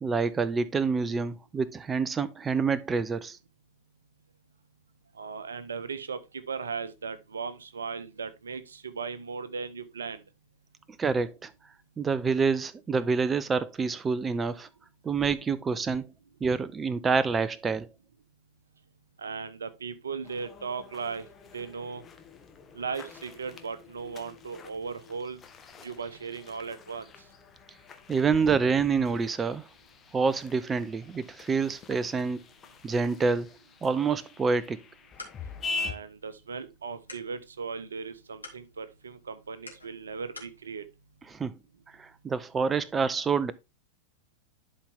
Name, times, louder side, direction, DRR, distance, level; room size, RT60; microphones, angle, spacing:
voice 1, 0.0-3.4 11.0-11.5 12.0-14.7 15.0-16.1 16.4-17.9 28.1-29.6 30.1-32.4 32.8-33.5 33.8-34.8 41.3-41.6 42.0-43.5, right 5 dB, 15° right, 0.5 m, -27 dB
voice 2, 5.2-6.2 6.5-10.2 19.2-21.2 21.5-22.0 22.7-25.4 25.8-27.1 35.8-40.8, right 5 dB, 70° right, 0.8 m, -37 dB
sound 1, 20.2-35.9, left 4 dB, 20° left, 1.2 m, -44 dB
sound 2, 34.8-40.6, left 2 dB, 80° left, 2.3 m, -51 dB
11.5 x 4.4 x 3.5 m
figure-of-eight pair, 90°, 0 cm